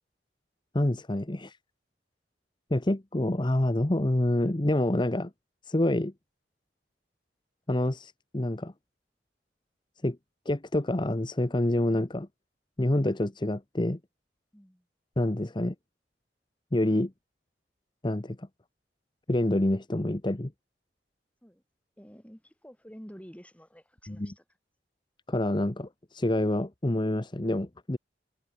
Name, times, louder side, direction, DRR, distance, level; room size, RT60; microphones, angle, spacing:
voice 1, 0.7-1.6 2.7-5.3 5.6-6.1 7.7-8.7 10.0-10.2 10.5-12.3 12.8-14.0 15.2-15.7 16.7-17.1 18.0-18.5 19.3-20.5 24.1-24.3 25.3-28.0, left 1 dB, 25° left, 1.0 m, -27 dB
voice 2, 14.5-14.9 21.4-21.6 22.0-24.4, equal, 10° left, 7.8 m, -49 dB
head